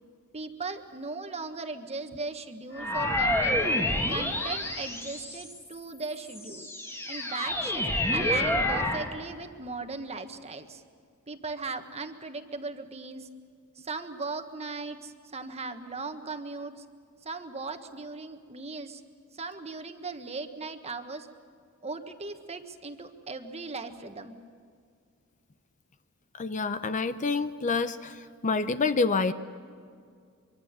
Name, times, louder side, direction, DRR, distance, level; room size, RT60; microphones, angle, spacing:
voice 1, 0.3-3.6 4.1-6.7 7.1-10.8 11.3-13.3 13.8-16.8 17.2-19.0 19.3-21.3 21.8-24.4, right 3 dB, 30° right, 7 dB, 1.4 m, -38 dB
sound 1, 2.8-5.7 6.3-9.1, left 1 dB, 10° left, 2.1 m, -28 dB
voice 2, 26.4-28.1 28.4-29.3, left 4 dB, 35° left, 11 dB, 0.7 m, -27 dB
24.5 x 24.5 x 6.9 m, 2.1 s
head